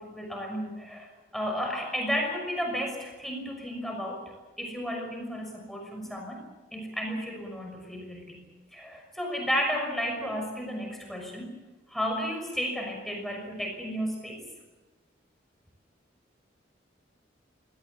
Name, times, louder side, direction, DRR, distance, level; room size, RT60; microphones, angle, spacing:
voice 1, 0.0-4.2 4.6-6.4 6.7-8.4 8.7-11.5 11.9-14.5, equal, ahead, 1 dB, 6.0 m, -33 dB
26.0 x 18.0 x 8.3 m, 1.2 s
head